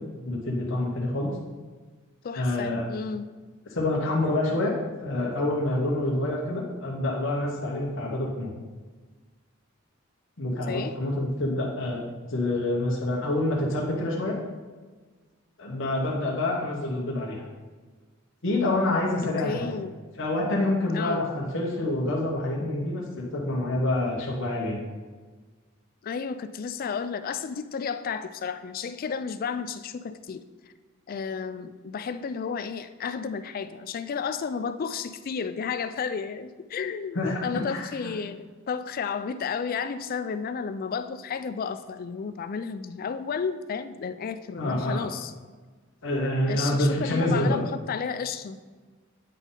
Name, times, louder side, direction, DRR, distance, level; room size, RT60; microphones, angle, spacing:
voice 1, 0.2-1.3 2.4-2.8 3.7-4.7 5.0-8.5 10.4-14.4 15.6-17.4 18.4-19.8 20.2-24.8 37.1-38.1 44.6-45.1 46.0-47.6, left 1 dB, 60° left, -2 dB, 1.2 m, -27 dB
voice 2, 2.2-3.3 10.7-10.9 19.4-20.0 20.9-21.2 26.0-30.4 31.1-45.3 46.5-48.6, left 6 dB, 45° left, 12 dB, 0.3 m, -32 dB
9.0 x 4.0 x 3.9 m, 1.4 s
head